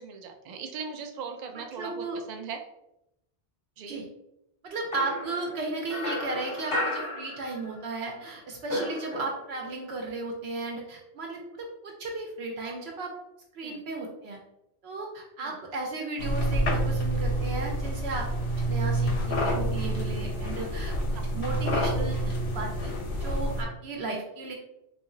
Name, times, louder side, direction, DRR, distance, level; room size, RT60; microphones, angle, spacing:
voice 1, 0.0-2.6 3.8-4.0 13.6-13.8 15.4-15.6, right 5 dB, 55° right, 5 dB, 0.5 m, -39 dB
voice 2, 1.5-2.2 3.9-4.0 4.6-13.1 13.5-14.4 14.8-18.3 18.7-21.0 21.3-22.2 22.5-24.5, right 3 dB, 75° right, 0 dB, 0.8 m, -35 dB
sound 1, 4.9-7.9 8.2-9.7, left 1 dB, 40° left, 0.5 m, -34 dB
sound 2, 16.2-23.6, right 1 dB, 80° left, 0.9 m, -28 dB
2.9 x 2.4 x 3.7 m, 0.85 s
omnidirectional pair, 1.1 m